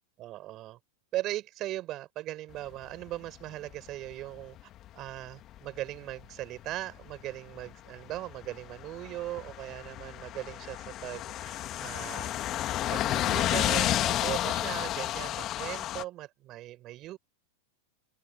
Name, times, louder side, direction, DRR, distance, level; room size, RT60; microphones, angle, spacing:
voice 1, 0.2-0.8 1.1-4.6 4.9-12.3 12.9-17.2, right 15 dB, 35° right, 8.0 m, -39 dB
sound 1, 2.8-4.6 4.9-5.2 5.5-5.6 6.0-6.2 6.6-7.7 8.0-16.0, left 13 dB, 35° left, 2.7 m, -31 dB
open air
figure-of-eight pair, 90°, 0 cm